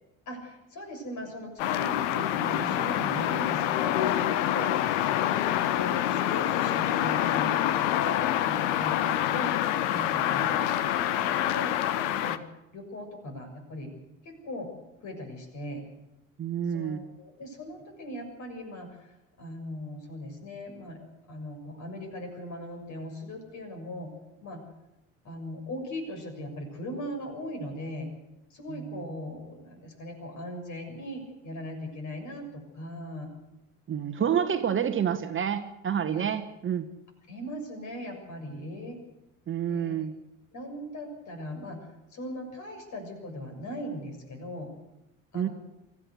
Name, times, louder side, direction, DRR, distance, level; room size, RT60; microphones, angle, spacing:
voice 1, 0.2-11.7 12.0-12.4 12.7-13.9 14.2-14.7 15.0-15.8 16.7-24.1 24.4-24.6 25.2-28.1 28.5-33.3 34.2-34.5 36.1-36.3 37.3-39.0 39.7-40.0 40.5-44.7 45.3-45.5, left 1 dB, 45° left, 4 dB, 6.7 m, -39 dB
sound 1, 1.6-12.4, left 12 dB, 60° left, 1.2 m, -26 dB
voice 2, 16.4-17.1 28.7-29.0 33.9-36.9 39.5-40.1 45.3-45.5, right 8 dB, 30° right, 8 dB, 1.5 m, -29 dB
24.5 x 14.5 x 8.2 m, 0.90 s
figure-of-eight pair, 60°, 41 cm